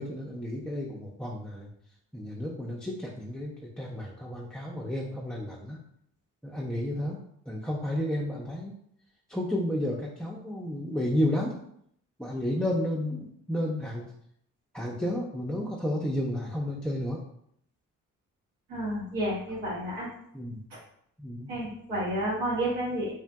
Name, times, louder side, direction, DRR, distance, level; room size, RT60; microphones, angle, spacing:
voice 1, 0.0-1.7 2.1-5.8 6.4-7.2 7.5-8.7 9.3-11.6 12.2-14.1 14.7-17.2 20.3-20.6 21.2-21.5, left 1 dB, ahead, -4 dB, 0.4 m, -32 dB
voice 2, 18.7-20.1 20.7-20.8 21.5-23.1, right 1 dB, 80° right, -7 dB, 1.0 m, -30 dB
2.9 x 2.4 x 2.3 m, 0.70 s
hypercardioid pair, 45°, 39 cm